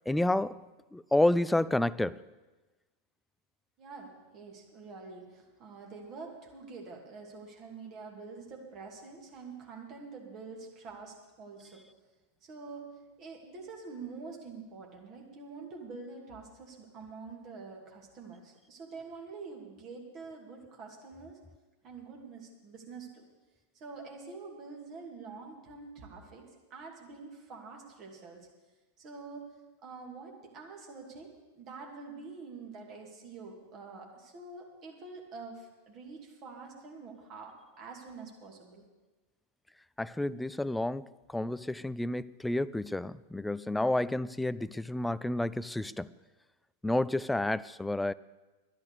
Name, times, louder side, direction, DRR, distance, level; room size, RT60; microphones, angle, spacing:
voice 1, 0.1-2.2 40.0-46.1 46.8-48.1, left 1 dB, 5° left, 19 dB, 0.3 m, -30 dB
voice 2, 3.8-11.8 12.4-12.9 13.2-21.4 21.8-23.2 23.7-28.5 29.0-29.5 29.8-31.3 31.6-38.8, right 4 dB, 35° right, 0 dB, 2.6 m, -46 dB
11.5 x 10.5 x 6.7 m, 1.2 s
figure-of-eight pair, 90°, 0 cm